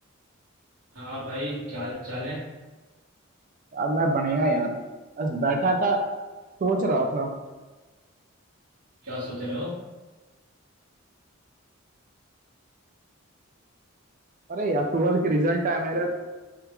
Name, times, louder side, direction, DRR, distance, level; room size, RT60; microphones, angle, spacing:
voice 1, 0.9-2.4 9.0-9.8, equal, 60° right, -13 dB, 1.2 m, -33 dB
voice 2, 3.7-4.7 5.2-6.0 6.6-7.3 14.5-16.1, right 2 dB, 40° right, 3 dB, 0.4 m, -24 dB
3.5 x 2.2 x 3.0 m, 1.2 s
head